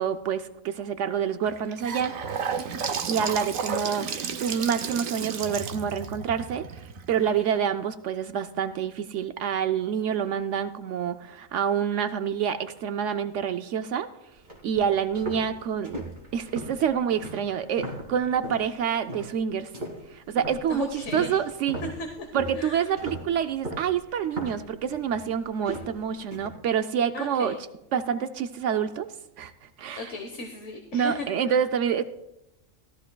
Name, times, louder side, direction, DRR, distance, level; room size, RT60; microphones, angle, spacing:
voice 1, 0.0-2.1 3.1-6.6 7.1-14.1 14.6-16.1 16.3-19.7 20.1-21.8 22.3-27.5 27.9-29.1 29.4-29.5 29.8-30.1 30.9-32.0, right 8 dB, 70° right, 9 dB, 0.9 m, -27 dB
Gurgling / Sink (filling or washing) / Bathtub (filling or washing), 1.4-7.5, right 6 dB, 85° right, 1.2 m, -32 dB
sound 1, 14.4-18.7 19.1-19.4 19.7-26.5, right 1 dB, 35° right, 2.7 m, -38 dB
voice 2, 20.7-21.4 21.8-22.9 27.1-27.5 29.9-31.6, left 3 dB, 65° left, 4 dB, 1.4 m, -36 dB
17.0 x 13.5 x 2.3 m, 0.88 s
omnidirectional pair, 1.4 m